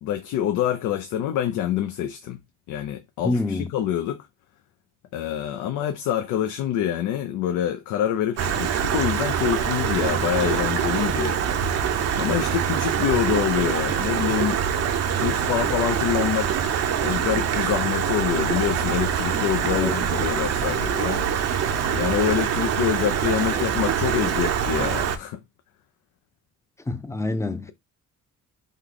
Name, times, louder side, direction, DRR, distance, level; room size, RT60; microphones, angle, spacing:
voice 1, 0.0-2.4 2.7-4.3 5.1-11.4 12.1-14.6 15.2-16.6 17.0-21.3 21.9-25.4, left 10 dB, 90° left, 0.5 m, -26 dB
voice 2, 3.2-3.7 19.7-20.0 23.5-23.7 26.9-27.7, left 2 dB, 10° left, 0.5 m, -27 dB
Stream, 8.4-25.2, right 8 dB, 55° right, 0.6 m, -24 dB
3.2 x 2.2 x 3.8 m
cardioid pair, 90°, 30 cm